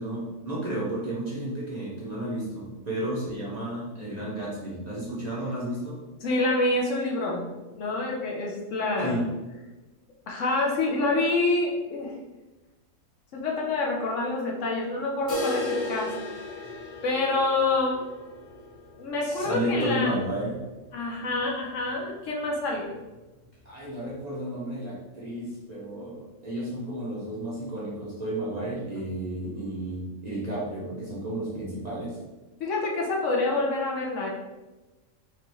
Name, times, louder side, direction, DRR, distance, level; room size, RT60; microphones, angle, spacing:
voice 1, 0.0-6.0 9.0-9.3 19.2-20.6 23.6-32.2, right 1 dB, 35° right, -7 dB, 0.7 m, -32 dB
voice 2, 6.2-9.2 10.3-12.1 13.3-16.1 17.0-18.0 19.0-20.1 20.9-22.9 32.6-34.3, left 2 dB, 65° left, -1 dB, 1.0 m, -27 dB
sound 1, 15.3-21.1 21.4-21.5 21.9-22.0 22.5-22.6 23.4-23.5, left 2 dB, 35° left, 1.0 m, -36 dB
4.7 x 2.5 x 3.0 m, 1.1 s
omnidirectional pair, 1.5 m